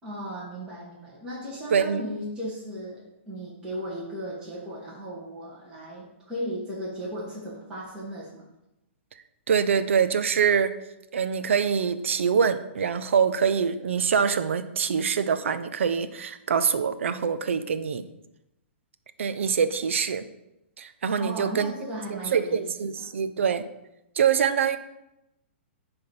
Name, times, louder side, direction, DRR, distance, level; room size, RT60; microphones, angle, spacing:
voice 1, 0.0-8.5 21.2-23.1, equal, 10° right, -8 dB, 2.4 m, -36 dB
voice 2, 1.7-2.0 9.5-10.8 11.1-18.1 19.2-20.2 20.8-21.7 22.1-23.6 24.2-24.8, right 7 dB, 80° right, 11 dB, 0.7 m, -24 dB
10.0 x 3.5 x 5.6 m, 0.90 s
hypercardioid pair, 145°, 7 cm